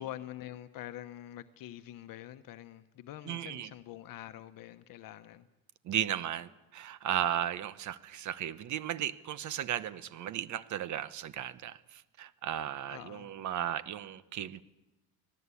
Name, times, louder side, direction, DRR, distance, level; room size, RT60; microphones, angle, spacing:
voice 1, 0.0-5.5 12.9-13.3, left 13 dB, 65° left, 10 dB, 1.0 m, -45 dB
voice 2, 3.3-3.7 5.8-14.6, right 11 dB, 50° right, 15 dB, 1.1 m, -35 dB
25.0 x 18.0 x 8.4 m, 1.0 s
cardioid pair, 145°, 37 cm